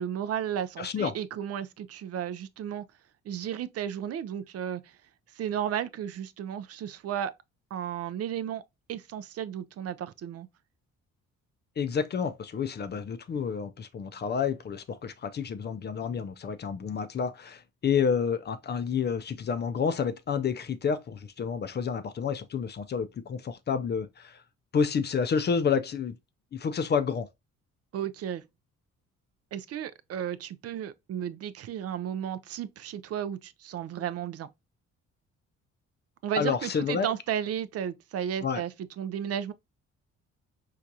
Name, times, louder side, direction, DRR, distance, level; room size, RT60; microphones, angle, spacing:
voice 1, 0.0-2.8 3.3-4.9 5.3-7.3 7.7-8.6 8.9-10.5 27.9-28.4 29.5-34.5 36.2-39.5, right 9 dB, 55° right, 0.4 m, -34 dB
voice 2, 0.8-1.2 11.8-24.4 24.7-26.2 26.5-27.3 36.4-37.1 38.4-38.6, left 6 dB, 35° left, 0.4 m, -29 dB
4.6 x 2.4 x 2.6 m
cardioid pair, 90°, 30 cm